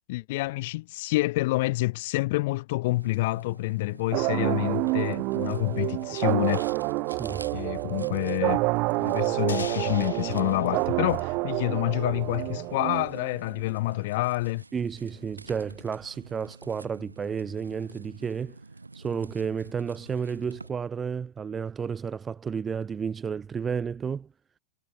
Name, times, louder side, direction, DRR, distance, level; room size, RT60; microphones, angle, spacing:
voice 1, 0.1-6.7 7.5-8.6 9.0-14.6, left 20 dB, 50° left, 2.6 m, -28 dB
sound 1, 2.8-20.7, right 3 dB, 80° right, 6.4 m, -48 dB
sound 2, 4.1-13.6, right 26 dB, 40° right, 1.7 m, -28 dB
voice 2, 7.1-7.5 14.7-18.6 18.9-24.3, right 6 dB, 20° right, 0.5 m, -32 dB
sound 3, 9.5-12.3, left 6 dB, 70° left, 2.4 m, -42 dB
figure-of-eight pair, 90°, 0 cm